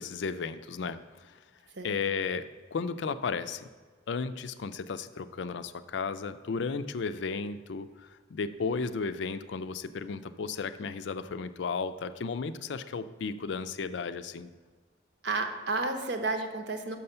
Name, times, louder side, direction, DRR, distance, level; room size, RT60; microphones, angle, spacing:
voice 1, 0.0-1.4 1.8-3.7 4.1-14.5, left 5 dB, 65° left, 12 dB, 0.4 m, -34 dB
voice 2, 15.2-17.0, right 3 dB, 65° right, 6 dB, 0.9 m, -31 dB
6.3 x 5.4 x 6.7 m, 1.4 s
head